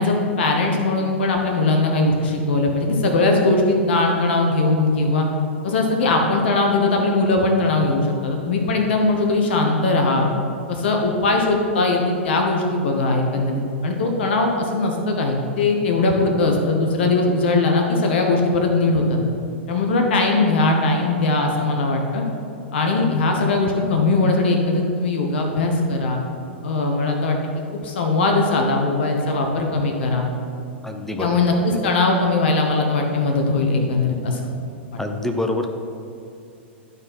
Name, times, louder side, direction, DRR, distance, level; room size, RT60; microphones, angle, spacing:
voice 1, 0.0-5.3 5.6-10.3 10.7-19.2 19.7-22.2 22.7-26.2 26.6-27.4 27.8-30.3 31.2-34.4, left 2 dB, 60° left, 2 dB, 1.0 m, -20 dB
voice 2, 30.8-31.4 35.0-35.7, left 2 dB, 5° left, 5 dB, 0.7 m, -26 dB
12.0 x 4.3 x 4.2 m, 2.6 s
figure-of-eight pair, 100°, 6 cm